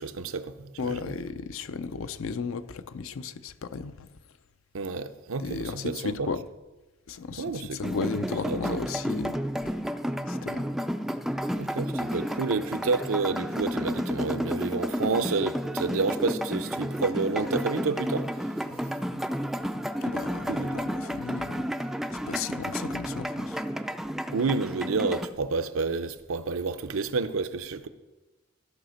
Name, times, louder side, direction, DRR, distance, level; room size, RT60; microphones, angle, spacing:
voice 1, 0.0-1.1 4.7-6.3 7.4-7.8 8.4-8.6 11.5-18.3 18.7-18.8 19.2-19.3 20.5-20.8 24.3-27.9, right 4 dB, 70° right, 0.6 m, -30 dB
voice 2, 0.8-4.1 5.4-6.5 7.1-9.8 10.3-10.7 20.0-23.6, left 4 dB, 70° left, 0.5 m, -35 dB
sound 1, 7.8-25.3, equal, ahead, 0.3 m, -31 dB
14.0 x 5.0 x 6.4 m
head